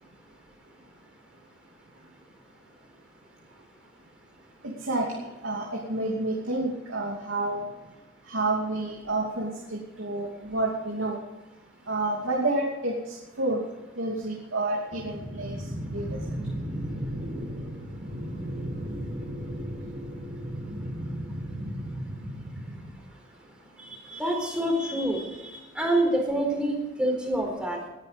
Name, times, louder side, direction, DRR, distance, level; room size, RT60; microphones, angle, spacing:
voice 1, 4.6-7.7 8.3-11.2 11.9-13.6 13.9-15.6 15.9-16.2, right 2 dB, 80° right, -2 dB, 2.7 m, -29 dB
sound 1, 14.9-22.9, equal, 40° right, 3.1 m, -35 dB
voice 2, 23.8-27.9, right 1 dB, 5° right, 1 dB, 4.3 m, -27 dB
19.5 x 10.5 x 5.3 m, 1.1 s
head